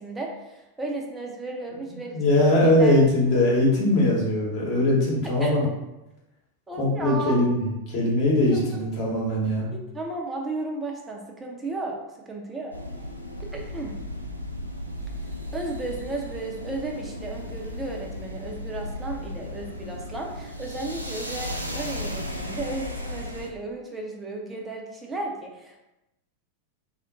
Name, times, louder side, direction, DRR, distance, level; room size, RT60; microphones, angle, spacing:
voice 1, 0.0-3.0 3.3-3.4 5.4-5.5 6.7-7.4 8.5-8.8 9.7-12.7 13.4-13.9 15.5-25.8, right 2 dB, 15° right, 0 dB, 0.6 m, -34 dB
voice 2, 2.1-5.7 6.8-9.7, left 1 dB, 40° left, -4 dB, 1.0 m, -21 dB
sound 1, 12.7-23.5, left 1 dB, 90° right, 0.3 m, -35 dB
2.4 x 2.1 x 3.7 m, 0.95 s
figure-of-eight pair, 90°, 0 cm